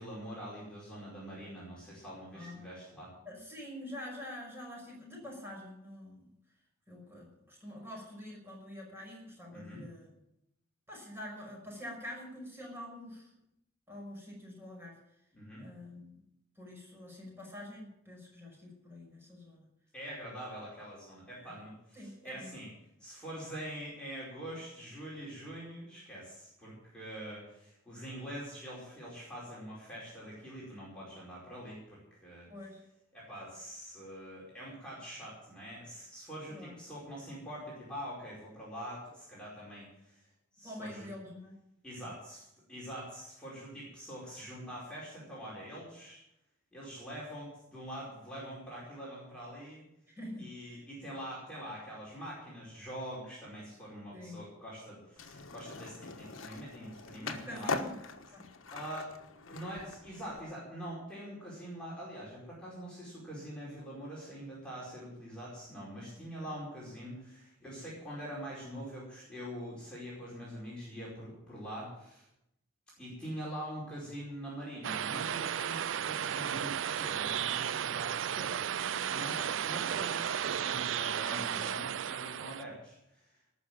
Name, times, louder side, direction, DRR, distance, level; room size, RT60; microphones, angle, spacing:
voice 1, 0.0-3.1 9.5-9.8 15.3-15.6 19.9-22.7 23.0-32.5 33.1-40.2 40.5-41.1 41.8-46.2 46.7-49.8 50.4-57.8 58.7-59.1 59.5-72.3 73.0-78.6 79.1-83.5, equal, 5° left, -7 dB, 4.9 m, -44 dB
voice 2, 2.3-2.7 3.3-6.3 6.9-10.1 10.9-13.3 13.9-15.0 15.6-16.2 16.6-19.6 21.4-21.5 21.9-22.6 32.5-32.8 36.5-36.8 40.6-41.6 50.2-50.8 54.1-54.4 56.0-56.1 57.3-57.9 58.3-58.5 66.2-66.5 76.1-76.2 78.1-79.4 81.3-81.7, left 1 dB, 10° right, -2 dB, 5.8 m, -46 dB
Skateboard, 55.2-60.4, left 3 dB, 80° left, 1.4 m, -41 dB
sound 1, 74.8-82.6, right 9 dB, 65° right, 0.4 m, -34 dB
18.5 x 6.4 x 9.0 m, 0.81 s
head